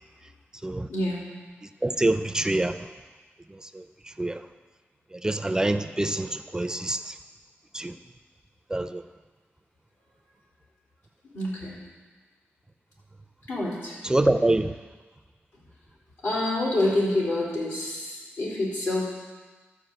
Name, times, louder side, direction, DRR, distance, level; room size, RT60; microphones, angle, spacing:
voice 1, 0.9-1.2 11.3-11.7 13.5-14.0 16.2-19.0, left 1 dB, 85° left, -6 dB, 3.7 m, -27 dB
voice 2, 1.8-2.8 3.7-3.8 4.2-4.4 5.2-7.1 7.7-7.9 8.7-9.0 14.0-14.7, right 2 dB, 15° right, 9 dB, 0.4 m, -25 dB
12.0 x 4.8 x 7.7 m, 1.3 s
wide cardioid pair, 115°, 4 cm